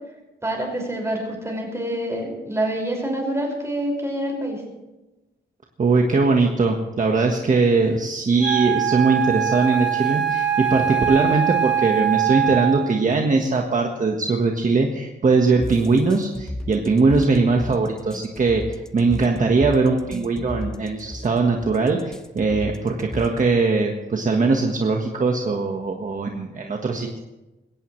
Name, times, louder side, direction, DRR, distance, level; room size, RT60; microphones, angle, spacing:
voice 1, 0.4-4.6, right 1 dB, 15° right, 0 dB, 5.7 m, -26 dB
voice 2, 5.8-27.2, right 3 dB, 45° right, 2 dB, 1.5 m, -20 dB
Wind instrument woodwind instrument, 8.4-13.0, right 10 dB, 85° right, 1.3 m, -22 dB
sound 1, 15.6-23.6, left 1 dB, 5° left, 0.8 m, -33 dB
21.0 x 17.5 x 3.3 m, 1.0 s
wide cardioid pair, 130°, 18 cm